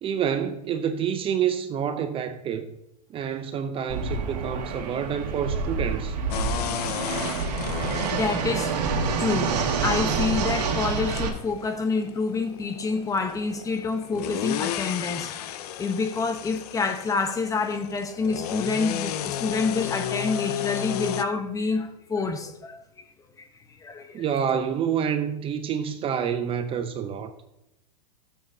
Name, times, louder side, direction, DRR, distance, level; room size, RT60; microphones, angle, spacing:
voice 1, 0.0-2.7 3.1-6.2 24.1-27.3, right 8 dB, 25° right, 0.7 m, -28 dB
Fixed-wing aircraft airplane, 3.9-11.3, right 5 dB, 75° right, 2.0 m, -27 dB
sound 1, 6.3-21.2, left 11 dB, 70° left, 0.7 m, -34 dB
voice 2, 8.1-8.8 9.2-22.8 23.4-23.5 23.8-24.2, left 4 dB, 15° left, 0.9 m, -28 dB
12.0 x 7.6 x 2.8 m
hypercardioid pair, 125°, 21 cm